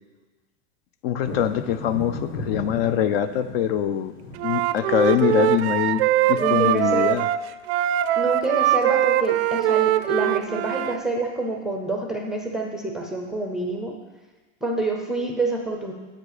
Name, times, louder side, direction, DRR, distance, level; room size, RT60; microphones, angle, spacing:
voice 1, 1.0-4.1 4.4-7.3, left 9 dB, 50° left, 11 dB, 0.6 m, -23 dB
sound 1, 1.2-6.7, left 2 dB, 90° left, 1.9 m, -37 dB
Wind instrument woodwind instrument, 4.4-11.0, right 13 dB, 55° right, 0.5 m, -22 dB
voice 2, 6.3-7.2 8.2-13.9 14.6-15.9, right 2 dB, ahead, 2 dB, 0.5 m, -27 dB
7.7 x 7.4 x 6.6 m, 1.2 s
supercardioid pair, 160°, 38 cm